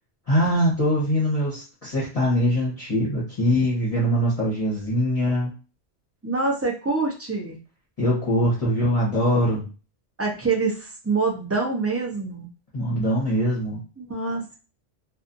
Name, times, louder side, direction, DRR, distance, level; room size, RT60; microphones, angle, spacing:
voice 1, 0.3-5.5 8.0-9.7 12.7-13.8, equal, 35° left, -7 dB, 0.9 m, -22 dB
voice 2, 6.2-7.6 10.2-12.5 14.0-14.6, right 4 dB, 20° right, -1 dB, 0.4 m, -25 dB
2.5 x 2.4 x 2.5 m, 0.33 s
omnidirectional pair, 1.1 m